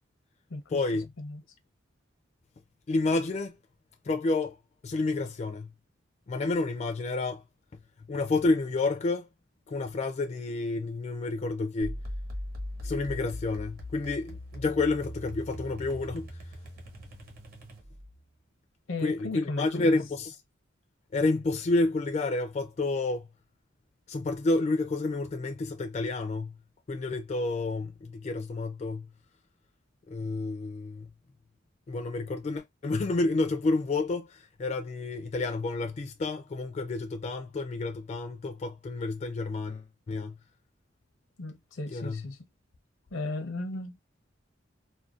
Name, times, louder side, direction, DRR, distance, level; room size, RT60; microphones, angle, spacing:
voice 1, 0.7-1.1 2.9-3.6 4.0-4.6 4.8-5.7 6.3-7.4 7.7-9.3 9.7-12.0 12.8-16.3 19.0-20.4 21.1-23.3 24.1-26.6 26.9-29.1 30.1-31.1 31.9-40.4 41.9-42.3, left 3 dB, 35° left, 0.3 m, -30 dB
sound 1, 11.8-18.2, left 1 dB, 50° right, 1.0 m, -40 dB
voice 2, 18.9-20.0 41.4-42.4 43.1-43.9, left 2 dB, 80° left, 0.6 m, -35 dB
2.5 x 2.1 x 2.3 m
head